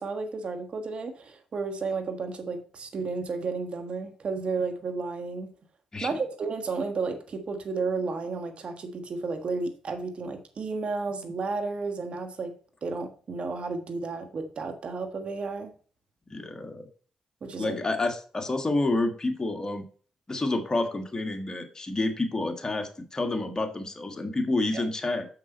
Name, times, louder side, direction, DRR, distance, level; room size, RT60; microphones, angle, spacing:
voice 1, 0.0-5.5 6.0-12.5 12.8-15.7 17.4-17.8 24.7-24.8, right 4 dB, 55° right, 7 dB, 1.4 m, -32 dB
voice 2, 16.3-16.9 17.6-19.8 20.3-25.3, left 2 dB, 30° left, 6 dB, 1.6 m, -29 dB
7.2 x 6.0 x 4.2 m, 0.41 s
supercardioid pair, 55°, 2 cm